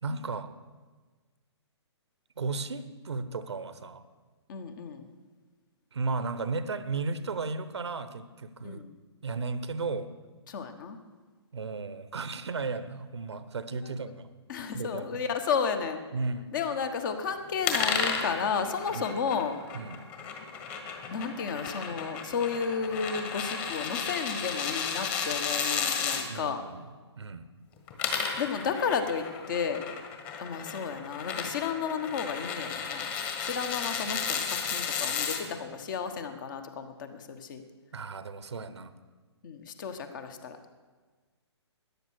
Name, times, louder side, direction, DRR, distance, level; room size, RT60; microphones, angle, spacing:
voice 1, 0.0-0.6 2.4-4.0 5.9-8.8 9.2-10.1 11.5-14.3 14.7-15.1 16.1-16.5 18.9-19.0 19.7-20.0 26.2-26.8 27.2-27.5 37.9-38.9, right 4 dB, 70° right, 13 dB, 0.9 m, -34 dB
voice 2, 4.5-5.1 8.6-9.0 10.5-11.0 13.8-13.9 14.5-16.0 16.5-19.6 21.1-26.6 28.4-29.8 30.4-33.1 33.4-37.6 39.4-40.6, left 6 dB, 45° left, 8 dB, 1.3 m, -32 dB
sound 1, 17.6-26.2 27.8-35.4, left 6 dB, 30° left, 1.6 m, -33 dB
13.5 x 10.0 x 6.4 m, 1.4 s
figure-of-eight pair, 125°, 15 cm